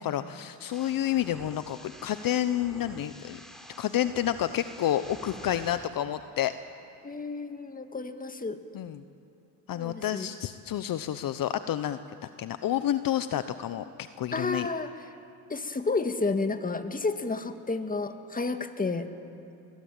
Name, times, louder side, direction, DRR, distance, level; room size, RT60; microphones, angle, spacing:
voice 1, 0.0-3.4 3.8-6.5 8.7-9.0 9.7-14.7, left 11 dB, 55° left, 11 dB, 1.0 m, -30 dB
sound 1, 0.7-5.7, equal, ahead, 4.4 m, -48 dB
voice 2, 7.0-8.6 9.8-10.3 14.3-14.9 15.5-19.1, left 3 dB, 20° left, 7 dB, 2.0 m, -31 dB
22.5 x 21.5 x 8.9 m, 2.9 s
supercardioid pair, 75°, 41 cm